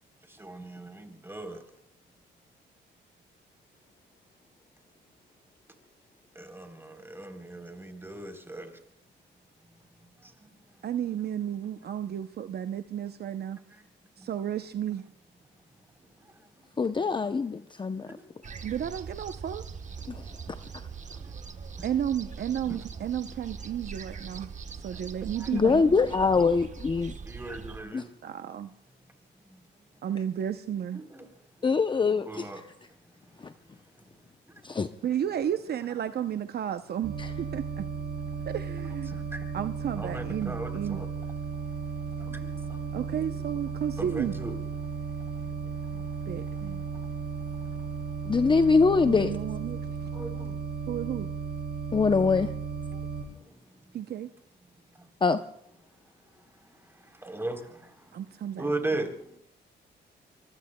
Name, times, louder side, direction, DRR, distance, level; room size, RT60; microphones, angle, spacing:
voice 1, 0.3-1.6 6.4-8.7 10.2-10.5 14.2-14.3 18.1-18.3 21.2-21.3 21.7-21.9 22.7-22.8 24.9-25.0 27.2-28.1 30.9-31.2 32.3-32.6 34.7-34.8 38.3-38.4 39.1-39.5 40.0-41.1 42.2-43.0 44.0-44.5 45.2-45.3 45.5-46.1 46.5-46.6 46.9-47.1 47.6-47.8 50.1-50.6 52.0-52.4 53.3-53.5 57.0-57.9 58.6-59.4, right 2 dB, 10° right, 3.5 m, -38 dB
voice 2, 10.8-13.6 14.2-15.0 18.6-19.6 21.8-24.5 24.8-26.0 28.2-28.7 30.0-31.0 35.0-37.8 38.5-39.1 39.5-41.0 42.9-44.4 46.3-46.8 49.1-49.8 50.9-51.3 52.9-53.0 53.9-54.3 58.1-58.7, right 9 dB, 55° right, 0.7 m, -32 dB
voice 3, 16.8-18.1 20.1-20.2 25.5-27.1 27.9-28.0 31.6-32.5 33.4-33.5 34.6-34.9 37.2-37.3 48.3-49.4 51.9-52.5 55.2-55.4, left 4 dB, 25° left, 0.6 m, -23 dB
sound 1, 18.4-27.8, right 5 dB, 40° right, 1.1 m, -42 dB
sound 2, 37.0-53.2, right 5 dB, 85° right, 6.9 m, -35 dB
24.5 x 24.5 x 2.2 m
cardioid pair, 90°, 20 cm